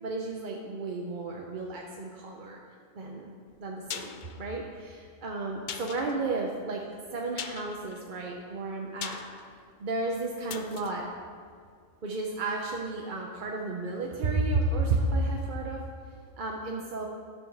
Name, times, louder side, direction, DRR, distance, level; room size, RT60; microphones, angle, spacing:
voice 1, 0.0-2.6 2.9-6.8 7.1-9.2 9.8-11.1 12.0-15.8 16.4-17.1, right 2 dB, 45° right, 0 dB, 0.7 m, -32 dB
sound 1, 3.5-12.3 12.6-12.7, left 8 dB, 80° left, 0.4 m, -44 dB
11.0 x 4.7 x 6.5 m, 2.1 s
omnidirectional pair, 1.4 m